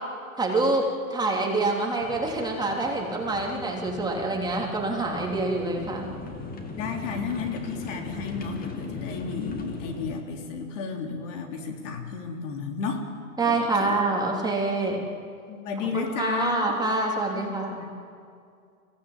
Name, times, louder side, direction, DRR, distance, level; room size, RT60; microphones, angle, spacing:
voice 1, 0.4-6.1 13.4-15.0 15.9-17.8, right 2 dB, 10° right, -1 dB, 3.2 m, -26 dB
sound 1, 2.0-10.2, left 3 dB, 20° left, 2.6 m, -39 dB
voice 2, 6.8-13.1 13.4-14.0 14.8-14.9 15.5-16.7 17.4-17.9, left 5 dB, 55° left, 3 dB, 3.6 m, -33 dB
25.0 x 17.0 x 8.6 m, 2.3 s
hypercardioid pair, 125°, 44 cm